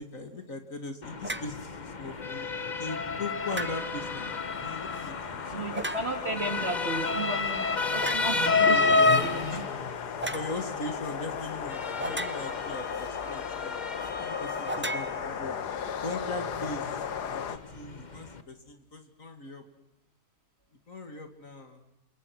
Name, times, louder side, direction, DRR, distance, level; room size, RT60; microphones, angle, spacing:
voice 1, 0.0-5.7 8.6-9.6 10.1-13.8 14.2-15.6 16.0-16.9 17.2-19.6 20.9-21.8, left 2 dB, 50° left, 7 dB, 2.9 m, -40 dB
Motor vehicle (road) / Siren, 1.0-18.4, left 3 dB, 30° left, 1.3 m, -31 dB
sound 1, 1.2-1.6 3.5-4.1 5.7-6.4 8.0-8.4 10.2-10.5 12.0-12.7 14.7-15.8, right 1 dB, 15° right, 0.5 m, -36 dB
sound 2, 1.4-17.6, left 8 dB, 75° left, 1.8 m, -37 dB
voice 2, 5.5-7.6 7.9-9.4, right 2 dB, 35° right, 5 dB, 3.8 m, -33 dB
28.0 x 28.0 x 6.2 m, 0.92 s
omnidirectional pair, 1.8 m